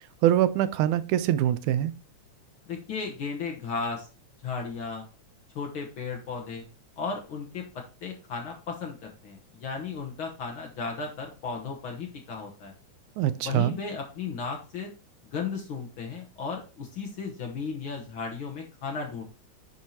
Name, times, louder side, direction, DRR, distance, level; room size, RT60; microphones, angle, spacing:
voice 1, 0.2-1.9 13.2-13.7, right 12 dB, 85° right, 13 dB, 2.0 m, -24 dB
voice 2, 2.7-4.1 4.4-5.0 5.5-6.6 7.0-12.7 13.4-14.9 15.3-19.2, left 5 dB, 60° left, 1 dB, 1.5 m, -35 dB
10.5 x 4.6 x 2.8 m, 0.33 s
omnidirectional pair, 3.4 m